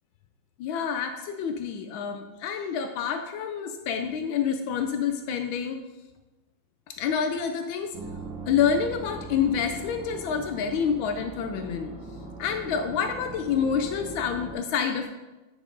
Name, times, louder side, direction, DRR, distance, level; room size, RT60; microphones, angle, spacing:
voice 1, 0.6-5.8 7.0-7.9 8.4-11.9 12.4-15.1, left 7 dB, 80° left, 6 dB, 1.4 m, -28 dB
sound 1, 7.9-14.6, right 2 dB, 70° right, 2.0 m, -40 dB
9.2 x 6.0 x 3.9 m, 1.1 s
omnidirectional pair, 2.2 m